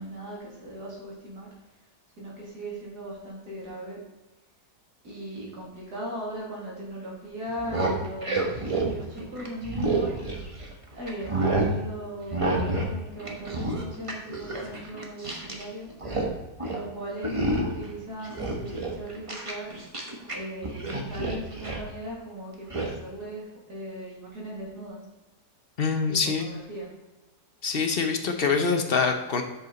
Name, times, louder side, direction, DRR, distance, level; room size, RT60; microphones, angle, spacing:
voice 1, 0.0-1.5 2.2-4.0 5.0-10.2 11.0-15.9 16.6-19.7 20.3-25.0 26.1-26.9, right 1 dB, 70° right, -5 dB, 3.1 m, -38 dB
sound 1, 7.5-10.7 11.1-11.7 12.3-12.9 13.2-15.6 15.9-16.3 16.6-16.8 17.2-17.9 18.2-20.4 20.6-21.9 22.7-22.9, right 2 dB, 25° right, 0.9 m, -29 dB
voice 2, 25.8-26.5 27.6-29.4, left 5 dB, 45° left, 5 dB, 0.8 m, -25 dB
8.2 x 6.4 x 4.0 m, 1.1 s
omnidirectional pair, 1.8 m